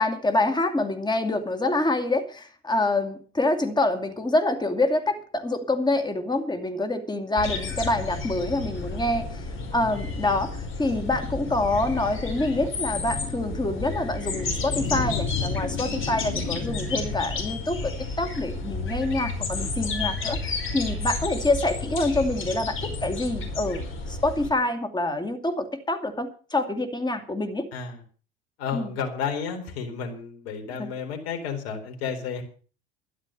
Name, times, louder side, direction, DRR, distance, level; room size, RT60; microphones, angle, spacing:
voice 1, 0.0-9.4 9.7-17.9 18.2-23.8 24.1-27.6 28.7-28.9, left 2 dB, 15° left, 7 dB, 2.5 m, -26 dB
sound 1, 7.4-24.5, left 4 dB, 40° left, 5.0 m, -31 dB
voice 2, 28.6-32.4, left 6 dB, 70° left, 2 dB, 4.3 m, -32 dB
12.5 x 11.0 x 6.7 m, 0.39 s
hypercardioid pair, 70°, 32 cm